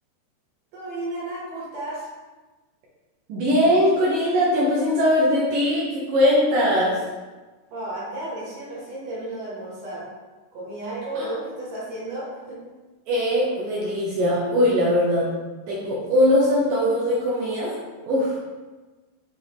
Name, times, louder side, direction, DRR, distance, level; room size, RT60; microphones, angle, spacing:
voice 1, 0.7-2.1 7.7-10.0 10.5-12.6, right 1 dB, 55° right, -7 dB, 3.2 m, -33 dB
voice 2, 3.3-7.0 11.2-11.3 13.1-15.3 15.7-17.8 18.1-18.4, left 1 dB, 70° right, -5 dB, 2.1 m, -21 dB
6.8 x 4.6 x 3.4 m, 1.3 s
omnidirectional pair, 4.9 m